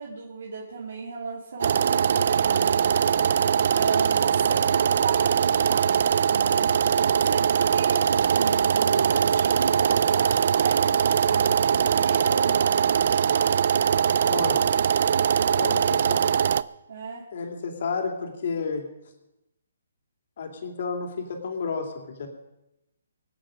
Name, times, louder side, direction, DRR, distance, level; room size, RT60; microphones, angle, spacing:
voice 1, 0.0-2.9 3.7-5.9 6.3-6.7 7.1-12.8 16.9-17.2, right 4 dB, 60° right, -3 dB, 2.8 m, -34 dB
sound 1, 1.6-16.6, right 8 dB, 45° right, 0.4 m, -22 dB
voice 2, 14.3-14.7 15.6-16.4 17.3-18.9 20.4-21.9 22.2-22.3, left 5 dB, 50° left, 4 dB, 2.7 m, -31 dB
24.0 x 8.7 x 5.1 m, 0.93 s
hypercardioid pair, 170°, 0 cm